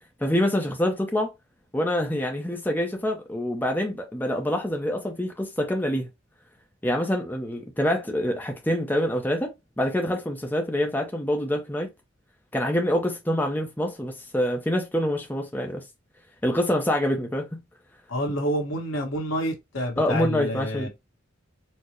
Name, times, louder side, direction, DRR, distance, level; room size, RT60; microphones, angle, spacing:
voice 1, 0.2-1.3 1.7-6.1 6.8-11.9 12.5-15.9 16.4-17.6 20.0-20.9, left 1 dB, 10° left, 0.5 m, -26 dB
voice 2, 18.1-20.9, equal, 75° left, 1.2 m, -28 dB
4.4 x 2.0 x 3.0 m
head